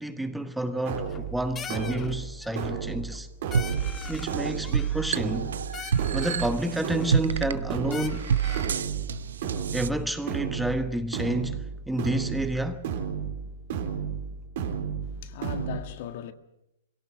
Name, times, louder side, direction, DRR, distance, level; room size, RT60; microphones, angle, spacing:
voice 1, 0.0-3.3 4.1-5.5 6.1-8.3 9.7-12.9, right 1 dB, 5° right, 1.2 m, -30 dB
sound 1, 0.8-15.8, right 7 dB, 60° right, 3.8 m, -34 dB
sound 2, 1.0-1.3 1.6-2.1 2.4-2.8 3.1-3.2 3.5-4.4 4.6-5.4 5.7-6.6 7.0-7.6 7.9-8.8, left 7 dB, 20° left, 1.4 m, -42 dB
sound 3, 3.5-9.9, right 7 dB, 75° right, 0.8 m, -29 dB
voice 2, 15.0-16.3, left 10 dB, 55° left, 1.7 m, -39 dB
22.0 x 17.0 x 7.7 m
hypercardioid pair, 120°, 0 cm